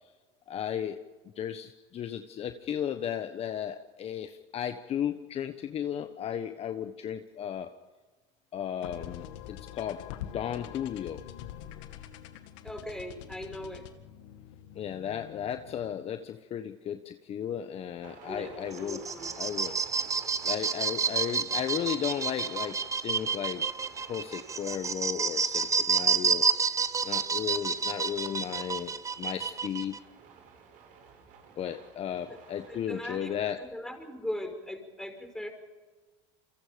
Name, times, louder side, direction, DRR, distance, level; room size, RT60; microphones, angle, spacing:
voice 1, 0.5-1.0 1.4-7.7 8.5-10.0 10.3-11.2 14.7-19.0 19.4-19.8 20.4-23.7 24.1-26.5 27.0-28.9 29.2-30.0 31.6-33.6, left 9 dB, 40° left, 8 dB, 1.3 m, -35 dB
sound 1, 8.8-16.2, left 11 dB, 80° left, 2.1 m, -45 dB
voice 2, 12.6-13.9 18.3-19.3 32.3-32.4 32.7-35.5, left 1 dB, 5° left, 5 dB, 5.3 m, -39 dB
sound 2, 18.0-33.5, right 6 dB, 60° right, 7.9 m, -52 dB
sound 3, 18.7-30.0, right 5 dB, 20° right, 1.0 m, -29 dB
28.5 x 24.0 x 5.2 m, 1.3 s
supercardioid pair, 105°, 15 cm